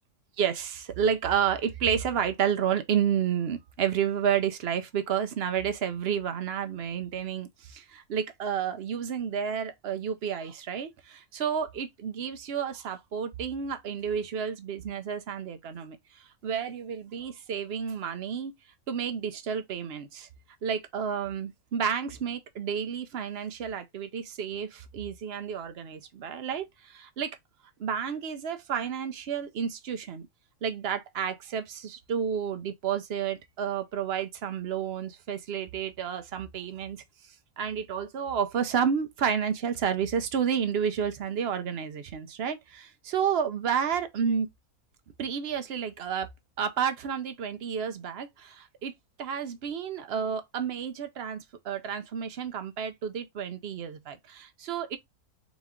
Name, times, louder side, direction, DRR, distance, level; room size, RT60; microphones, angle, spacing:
voice 1, 0.4-16.0 16.4-18.5 18.9-20.3 20.6-27.4 27.8-30.3 30.6-37.0 37.6-44.5 45.2-46.3 46.6-48.9 49.2-55.0, right 7 dB, 55° right, 0.8 m, -30 dB
4.1 x 3.0 x 3.6 m
omnidirectional pair, 1.6 m